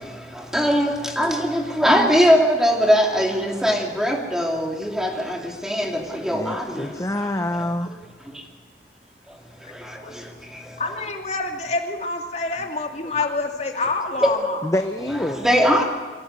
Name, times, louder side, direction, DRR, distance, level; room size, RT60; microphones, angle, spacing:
voice 1, 0.5-6.6 14.2-14.3 15.4-15.8, equal, 5° right, 2.7 m, -20 dB
voice 2, 6.3-8.0 13.2-13.3 14.6-15.4, left 1 dB, 20° left, 0.7 m, -26 dB
voice 3, 10.8-14.6, left 3 dB, 40° left, 2.4 m, -27 dB
24.5 x 17.0 x 8.3 m
head